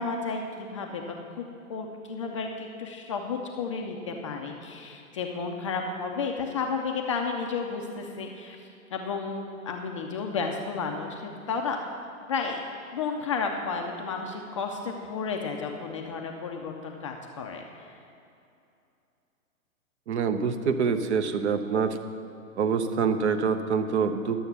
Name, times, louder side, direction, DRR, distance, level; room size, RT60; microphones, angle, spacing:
voice 1, 0.0-1.4 1.7-8.6 8.9-11.8 12.3-12.6 12.9-18.0, left 5 dB, 25° left, 2 dB, 0.4 m, -32 dB
voice 2, 20.1-22.0 22.6-24.5, right 6 dB, 50° right, 8 dB, 0.8 m, -26 dB
11.5 x 7.0 x 5.8 m, 2.6 s
figure-of-eight pair, 120°, 42 cm